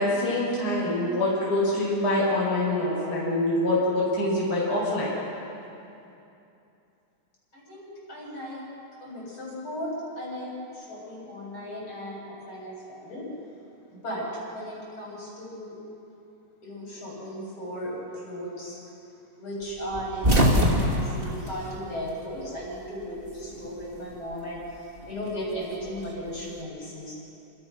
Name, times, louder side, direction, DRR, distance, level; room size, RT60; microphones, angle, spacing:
voice 1, 0.0-5.1, left 1 dB, 45° left, -7 dB, 6.3 m, -25 dB
voice 2, 7.5-8.7 9.0-13.3 13.9-15.8 16.6-18.8 19.4-27.1, equal, 70° left, -4 dB, 8.9 m, -36 dB
sound 1, 19.9-22.5 22.7-23.8 25.0-26.5, equal, 25° right, 2.8 m, -24 dB
28.0 x 27.0 x 6.3 m, 2.8 s
omnidirectional pair, 2.4 m